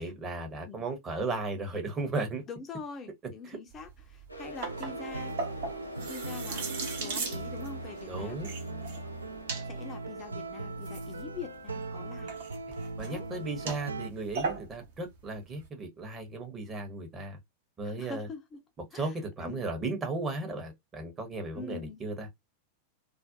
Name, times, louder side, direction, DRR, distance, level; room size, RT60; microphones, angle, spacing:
voice 1, 0.0-2.4 3.5-3.6 8.1-8.5 12.7-17.4 17.8-18.3 18.9-22.3, right 2 dB, 25° right, 0.8 m, -35 dB
voice 2, 2.5-5.4 6.1-8.4 9.7-12.3 13.0-13.3 17.8-18.6 18.9-19.6 21.5-22.0, left 5 dB, 25° left, 0.4 m, -44 dB
sound 1, 3.7-15.7, right 4 dB, 55° right, 0.7 m, -40 dB
sound 2, 4.3-11.9, right 1 dB, 90° left, 0.5 m, -46 dB
sound 3, 4.7-14.1, right 2 dB, 80° right, 0.3 m, -39 dB
2.4 x 2.1 x 2.5 m
figure-of-eight pair, 90°, 0 cm